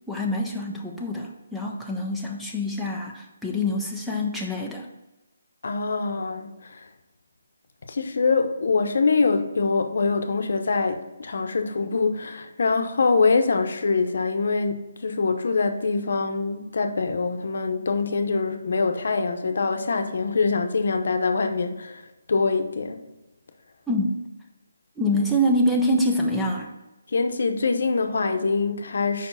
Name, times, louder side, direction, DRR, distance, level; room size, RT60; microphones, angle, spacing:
voice 1, 0.1-4.9 23.9-24.2 25.0-26.7, left 1 dB, ahead, -2 dB, 0.6 m, -25 dB
voice 2, 5.6-6.8 7.9-23.0 27.1-29.3, left 4 dB, 65° left, 6 dB, 0.8 m, -24 dB
5.2 x 4.5 x 5.4 m, 1.0 s
hypercardioid pair, 160°, 0 cm